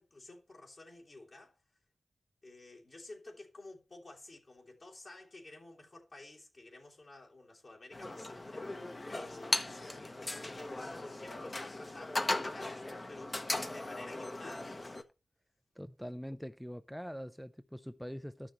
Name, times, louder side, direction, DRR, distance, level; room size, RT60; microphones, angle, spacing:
voice 1, 0.0-1.6 2.4-15.0, left 2 dB, 55° left, 3.0 m, -52 dB
sound 1, 7.9-15.0, left 2 dB, 35° left, 1.0 m, -38 dB
voice 2, 15.8-18.5, equal, ahead, 0.5 m, -43 dB
13.5 x 6.1 x 3.1 m
cardioid pair, 60°, 0 cm